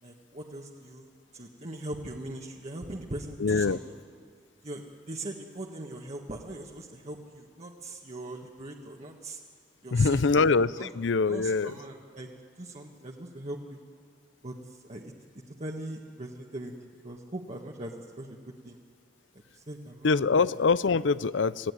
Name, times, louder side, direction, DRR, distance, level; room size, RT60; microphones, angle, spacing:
voice 1, 0.0-3.8 4.6-9.4 9.8-10.4 10.8-10.9 11.3-12.3 12.6-13.8 14.4-15.1 15.6-18.8 19.3-20.1, right 1 dB, 40° right, 0 dB, 1.6 m, -40 dB
voice 2, 3.4-3.8 9.9-11.8 20.0-21.7, left 4 dB, 90° left, 18 dB, 0.6 m, -24 dB
27.0 x 16.5 x 9.8 m, 2.2 s
head